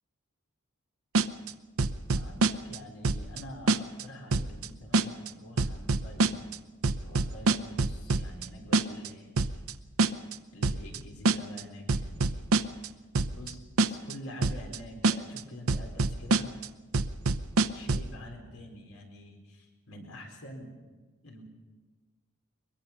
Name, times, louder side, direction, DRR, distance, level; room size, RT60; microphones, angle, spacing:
sound 1, 1.2-1.5 1.8-2.8 3.0-3.4 3.7-4.0 4.3-4.7 4.9-5.3 5.6-6.6 6.8-8.5 8.7-9.1 9.4-9.7 10.0-10.4 10.6-11.0 11.3-11.6 11.9-12.9 13.2-13.5 13.8-14.1 14.4-14.8 15.0-15.4 15.7-16.7 16.9-18.1, right 3 dB, 70° right, 0.8 m, -25 dB
voice 1, 2.2-6.4 7.0-9.6 10.5-12.4 12.8-12.9 13.3-13.6 13.9-16.5 17.7-20.7 21.2-21.4, equal, 75° left, 2 dB, 4.3 m, -46 dB
23.0 x 22.0 x 5.8 m, 1.3 s
head